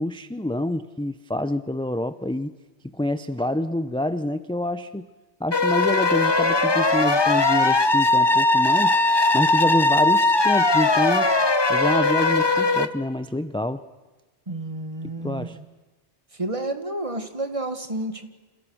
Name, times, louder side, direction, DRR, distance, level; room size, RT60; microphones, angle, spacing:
voice 1, 0.0-2.5 2.9-5.1 5.4-9.0 9.3-11.4 11.7-13.8 15.2-15.6, left 1 dB, 5° left, 12 dB, 0.6 m, -27 dB
sound 1, 5.5-12.9, left 2 dB, 25° left, 1.0 m, -19 dB
voice 2, 14.5-15.6 16.4-18.3, right 2 dB, 30° right, 7 dB, 1.9 m, -30 dB
29.0 x 27.5 x 6.4 m, 1.3 s
omnidirectional pair, 1.1 m